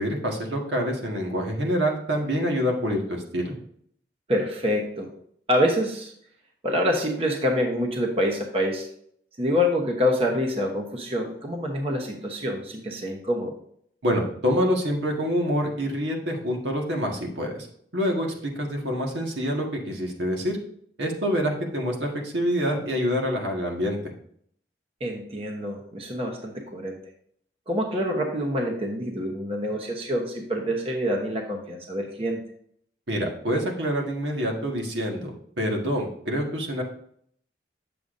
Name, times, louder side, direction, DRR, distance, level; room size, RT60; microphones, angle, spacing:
voice 1, 0.0-3.5 14.0-17.7 17.9-20.6 21.0-24.0 33.1-35.3 35.6-36.8, equal, 90° right, 1 dB, 1.6 m, -26 dB
voice 2, 4.3-5.1 5.5-6.1 6.6-8.9 9.4-13.5 25.0-27.0 27.7-32.4, equal, 35° right, 1 dB, 0.9 m, -26 dB
8.3 x 6.9 x 2.6 m, 0.66 s
head